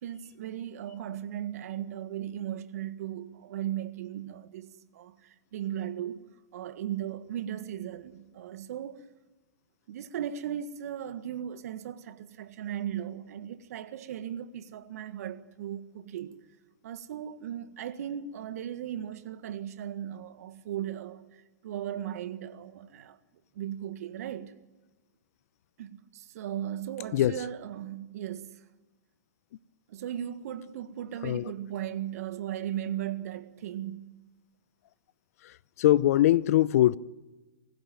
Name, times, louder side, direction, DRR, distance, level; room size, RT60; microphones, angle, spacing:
voice 1, 0.0-6.3 6.5-9.0 9.9-16.4 16.8-23.2 23.5-24.5 25.8-28.6 29.9-34.1, right 10 dB, 65° right, 1.7 m, -37 dB
voice 2, 35.4-37.0, left 13 dB, 60° left, 0.7 m, -23 dB
24.5 x 16.0 x 9.4 m
hypercardioid pair, 115°, 9 cm